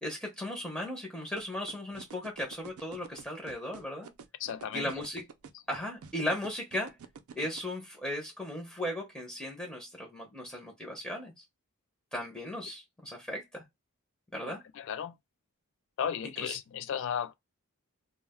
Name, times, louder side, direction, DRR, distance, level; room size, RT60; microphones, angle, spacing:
voice 1, 0.0-4.1 4.7-5.2 5.7-6.9 7.4-11.4 12.1-13.6 14.3-14.6 16.4-16.6, left 1 dB, 5° left, 0.6 m, -37 dB
sound 1, 1.4-7.6, right 5 dB, 70° right, 0.4 m, -47 dB
voice 2, 4.4-4.9 14.8-15.1 16.0-17.3, left 8 dB, 55° left, 0.3 m, -34 dB
2.2 x 2.1 x 3.4 m
head